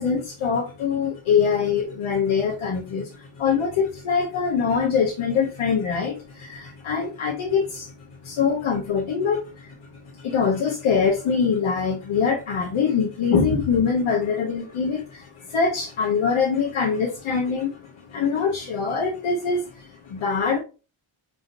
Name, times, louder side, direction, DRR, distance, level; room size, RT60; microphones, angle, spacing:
voice 1, 0.0-7.9 8.2-9.7 10.2-20.6, left 6 dB, 75° left, 0.9 m, -24 dB
4.0 x 3.5 x 2.6 m
cardioid pair, 55°, 49 cm